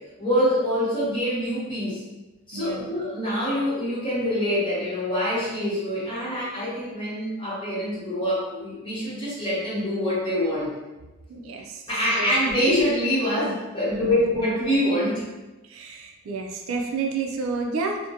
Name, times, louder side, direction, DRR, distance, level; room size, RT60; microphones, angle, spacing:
voice 1, 0.2-2.0 2.5-10.7 11.9-15.2, equal, 25° left, -10 dB, 1.0 m, -25 dB
voice 2, 2.5-2.8 11.3-11.8 12.2-12.4 13.9-14.2 15.6-18.0, right 4 dB, 75° right, 2 dB, 0.4 m, -30 dB
2.5 x 2.1 x 2.7 m, 1.1 s
head